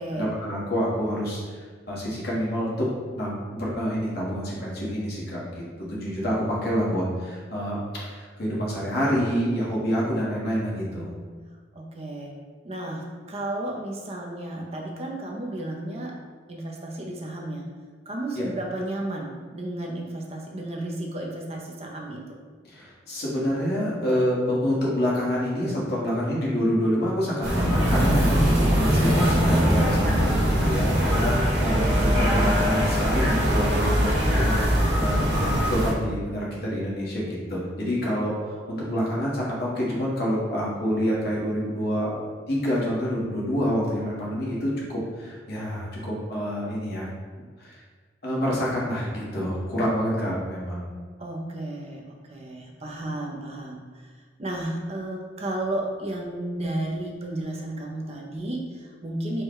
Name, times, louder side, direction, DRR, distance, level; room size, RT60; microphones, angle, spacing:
voice 1, 0.2-2.9 3.1-5.6 5.9-11.1 18.3-18.4 22.7-42.2 42.5-47.1 47.6-47.8 48.2-50.9, equal, 55° left, -5 dB, 1.2 m, -27 dB
voice 2, 11.8-12.3 12.6-16.1 16.5-17.7 18.1-22.4 51.2-54.1 54.4-59.4, right 1 dB, 35° right, -1 dB, 0.5 m, -33 dB
sound 1, 27.4-35.9, equal, 60° right, 1.4 m, -21 dB
4.6 x 2.2 x 4.6 m, 1.5 s
head